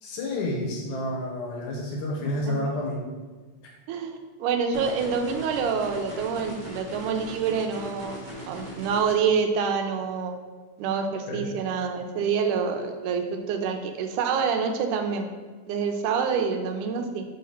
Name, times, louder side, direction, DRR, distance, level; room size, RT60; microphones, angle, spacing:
voice 1, 0.0-3.0 11.3-11.5, left 1 dB, 75° left, -1 dB, 2.2 m, -30 dB
voice 2, 3.9-8.2 8.5-10.4 10.8-15.3 15.7-17.2, right 6 dB, 85° right, 5 dB, 2.1 m, -27 dB
sound 1, 4.7-9.1, equal, 45° right, 0.6 m, -39 dB
5.0 x 3.8 x 5.5 m, 1.4 s
omnidirectional pair, 3.6 m